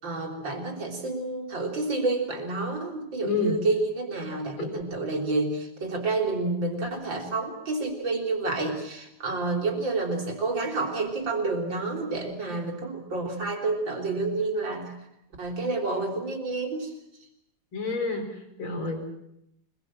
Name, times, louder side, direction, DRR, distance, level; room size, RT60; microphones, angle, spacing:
voice 1, 0.0-14.9 15.4-16.9, right 3 dB, 60° right, 2 dB, 4.4 m, -29 dB
voice 2, 3.2-3.6 4.6-4.7 17.7-18.2 18.6-19.0, left 3 dB, 70° left, 5 dB, 5.3 m, -28 dB
25.0 x 21.5 x 7.6 m, 0.81 s
omnidirectional pair, 2.4 m